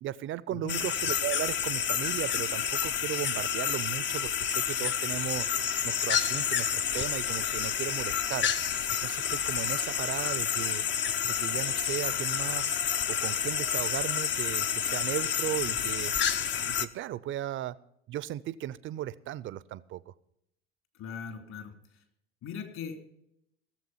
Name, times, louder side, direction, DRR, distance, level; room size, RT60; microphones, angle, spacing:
voice 1, 0.0-5.5 5.8-8.5 9.0-10.8 11.2-12.8 13.1-16.1 16.7-17.8 18.1-20.1, right 13 dB, 35° right, 19 dB, 0.6 m, -36 dB
sound 1, 0.7-16.9, left 8 dB, 35° left, 0.8 m, -29 dB
voice 2, 20.9-22.0 22.4-23.0, left 6 dB, 50° left, 6 dB, 3.1 m, -40 dB
17.5 x 7.4 x 5.6 m, 0.77 s
hypercardioid pair, 75°, 33 cm